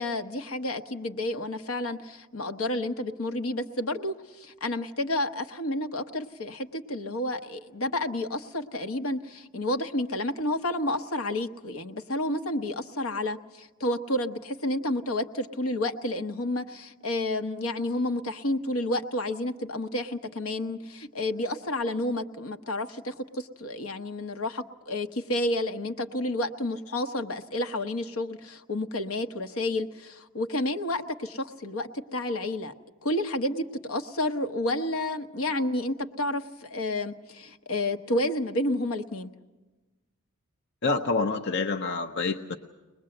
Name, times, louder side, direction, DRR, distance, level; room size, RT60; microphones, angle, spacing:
voice 1, 0.0-32.7 33.0-39.3, left 1 dB, 70° left, 7 dB, 1.1 m, -30 dB
voice 2, 40.8-42.6, left 3 dB, 50° left, 4 dB, 0.8 m, -27 dB
23.5 x 20.5 x 7.8 m, 1.2 s
head